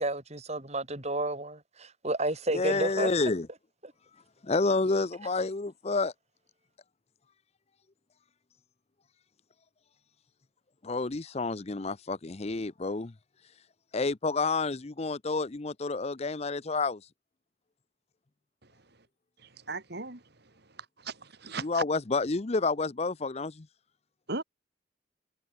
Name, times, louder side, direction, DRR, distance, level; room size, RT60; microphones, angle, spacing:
voice 1, 0.0-3.1, right 2 dB, 35° right, 4.8 m, -31 dB
voice 2, 2.5-3.5 4.4-6.1 10.8-13.1 13.9-17.0 21.6-23.7, left 3 dB, 30° left, 0.6 m, -29 dB
voice 3, 19.7-20.2 21.0-21.8 24.3-24.4, right 3 dB, 55° right, 2.6 m, -36 dB
head